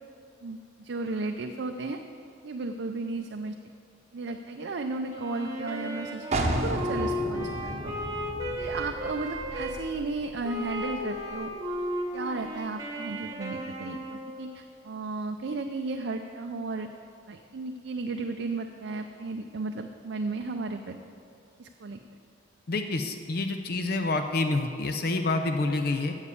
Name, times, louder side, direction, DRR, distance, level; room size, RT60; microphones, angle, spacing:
voice 1, 0.4-2.0 2.4-3.5 4.1-7.9 8.6-11.5 12.1-16.9 17.3-21.0 21.6-22.0, right 3 dB, 65° right, 4 dB, 0.5 m, -34 dB
Wind instrument woodwind instrument, 5.1-9.8 10.4-14.4, equal, 15° right, 1.1 m, -35 dB
sound 1, 6.3-11.9, right 1 dB, 35° right, 0.8 m, -34 dB
voice 2, 22.7-26.1, left 2 dB, 50° left, 5 dB, 0.5 m, -28 dB
7.2 x 7.1 x 8.2 m, 2.5 s
head